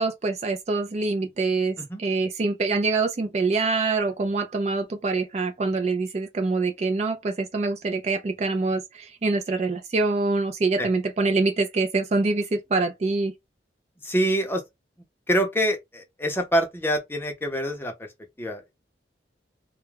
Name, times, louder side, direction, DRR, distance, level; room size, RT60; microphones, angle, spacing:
voice 1, 0.0-13.3, right 3 dB, 35° right, 0.3 m, -25 dB
voice 2, 14.0-14.6 15.3-18.1 18.4-18.6, equal, 15° left, 0.6 m, -25 dB
2.3 x 2.1 x 3.2 m
head